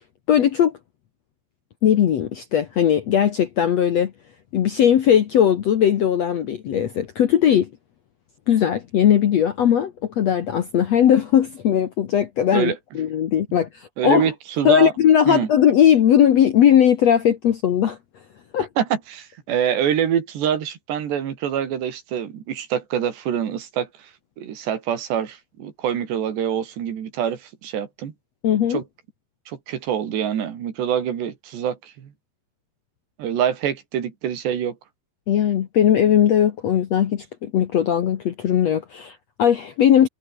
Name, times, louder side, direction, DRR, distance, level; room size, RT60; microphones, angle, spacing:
voice 1, 0.3-0.8 1.8-4.1 4.5-7.7 8.5-14.3 14.6-18.0 18.5-18.7 28.4-28.8 35.3-40.1, left 9 dB, 65° left, 1.7 m, -18 dB
voice 2, 14.0-14.9 15.3-15.5 18.8-24.1 24.4-28.1 28.7-28.8 29.5-32.1 33.2-34.8, right 9 dB, 85° right, 5.1 m, -25 dB
omnidirectional pair, 4.8 m